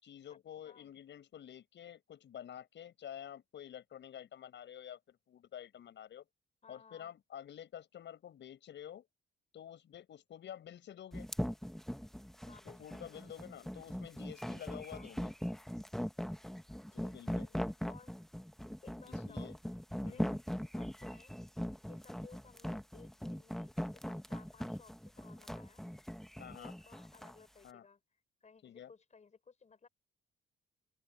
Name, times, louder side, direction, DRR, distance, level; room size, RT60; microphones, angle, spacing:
voice 1, 0.0-6.2 6.7-9.1 9.5-11.3 12.6-15.3 16.9-17.5 19.1-19.6 20.0-20.4 26.4-26.7 27.6-27.9 28.6-28.9, left 10 dB, 65° left, 6.2 m, -50 dB
voice 2, 6.6-7.1 12.4-13.3 14.9-15.1 16.9-18.2 18.8-19.6 20.0-20.2 20.8-21.3 21.9-25.8 26.5-28.0 28.4-29.9, left 5 dB, 35° left, 5.0 m, -60 dB
sound 1, 11.1-27.4, equal, ahead, 1.0 m, -40 dB
cardioid pair, 90°, 20 cm